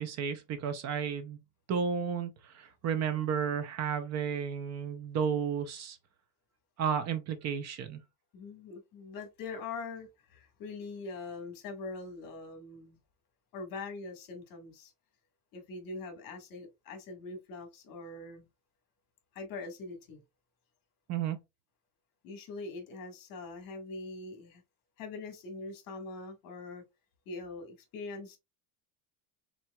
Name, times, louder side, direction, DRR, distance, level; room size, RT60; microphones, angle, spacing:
voice 1, 0.0-1.4 1.7-6.0 6.8-8.0 21.1-21.4, right 7 dB, 40° right, 0.6 m, -32 dB
voice 2, 8.3-13.0 13.5-14.9 15.5-18.5 19.3-20.2 22.2-24.6 25.0-26.8 27.2-28.4, left 3 dB, 50° left, 1.7 m, -43 dB
4.5 x 4.1 x 2.3 m
cardioid pair, 155°, 43 cm